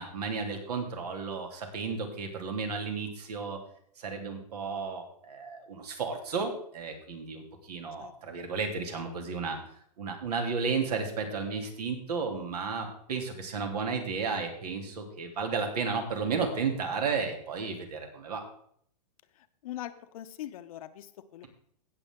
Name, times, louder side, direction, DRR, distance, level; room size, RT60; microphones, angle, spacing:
voice 1, 0.0-3.6 4.0-9.6 10.0-18.4, right 5 dB, 75° right, 4 dB, 2.9 m, -33 dB
voice 2, 19.6-21.1 21.3-21.5, left 13 dB, 60° left, 11 dB, 0.9 m, -41 dB
17.5 x 7.0 x 3.7 m, 0.65 s
hypercardioid pair, 140°, 20 cm